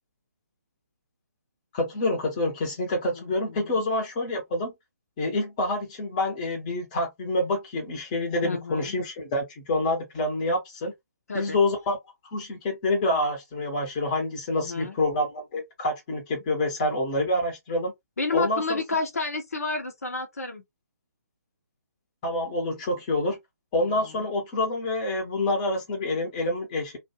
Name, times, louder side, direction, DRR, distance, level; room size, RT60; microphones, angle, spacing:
voice 1, 1.7-4.7 5.2-10.9 11.3-12.0 12.3-17.9 18.3-19.0 22.2-23.4 23.7-27.0, left 2 dB, 25° left, 1.0 m, -27 dB
voice 2, 3.1-3.8 8.4-8.9 11.3-11.6 14.6-15.0 18.2-20.6 23.9-24.3, left 3 dB, 60° left, 0.9 m, -31 dB
2.5 x 2.3 x 2.8 m
figure-of-eight pair, 135°, 9 cm